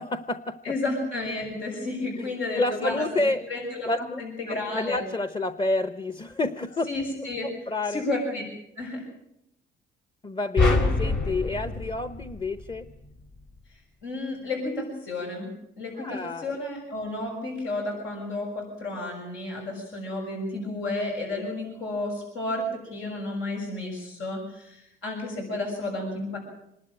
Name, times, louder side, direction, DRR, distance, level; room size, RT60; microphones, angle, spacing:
voice 1, 0.0-0.6 2.2-3.4 3.9-4.2 4.5-6.9 7.4-8.0 10.2-12.9 16.0-16.6, left 2 dB, 25° left, 11 dB, 0.9 m, -29 dB
voice 2, 0.6-3.9 4.2-5.0 6.9-7.5 7.9-8.4 8.7-9.0 14.0-15.5 15.8-26.4, left 2 dB, 85° left, -1 dB, 6.7 m, -32 dB
sound 1, 10.6-13.0, left 2 dB, 65° left, 3.6 m, -25 dB
26.0 x 12.0 x 9.0 m, 0.80 s
cardioid pair, 90°, 20 cm